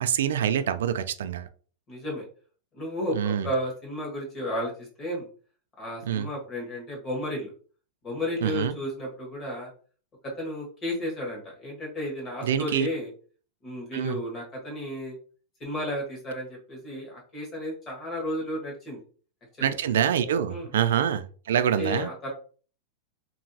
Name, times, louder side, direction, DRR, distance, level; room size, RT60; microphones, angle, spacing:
voice 1, 0.0-1.5 3.1-3.5 6.0-6.3 8.4-8.8 12.4-12.9 13.9-14.2 19.6-22.1, right 9 dB, 85° right, 10 dB, 0.3 m, -26 dB
voice 2, 1.9-2.3 2.7-5.3 5.8-7.5 8.0-9.7 10.2-13.1 13.6-15.2 15.6-19.0 19.6-19.7 20.5-20.7 21.8-22.3, equal, 20° left, -1 dB, 1.1 m, -33 dB
3.0 x 2.6 x 2.7 m, 0.41 s
supercardioid pair, 170°, 0 cm